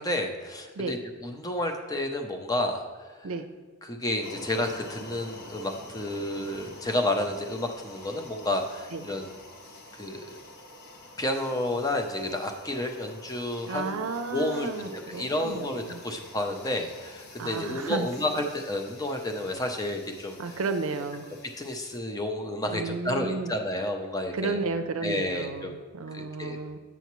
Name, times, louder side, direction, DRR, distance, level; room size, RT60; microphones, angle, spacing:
voice 1, 0.0-3.3 3.8-9.3 9.9-10.3 11.2-14.0 14.3-20.6 21.6-24.6 25.0-25.7 26.1-26.6, left 1 dB, 15° left, 4 dB, 0.5 m, -31 dB
sound 1, 4.2-22.0, left 1 dB, 50° left, 0.8 m, -47 dB
voice 2, 13.7-16.0 17.4-18.1 20.4-21.3 22.7-23.5 24.3-26.8, right 3 dB, 70° right, 7 dB, 0.5 m, -32 dB
8.2 x 6.9 x 3.1 m, 1.4 s
head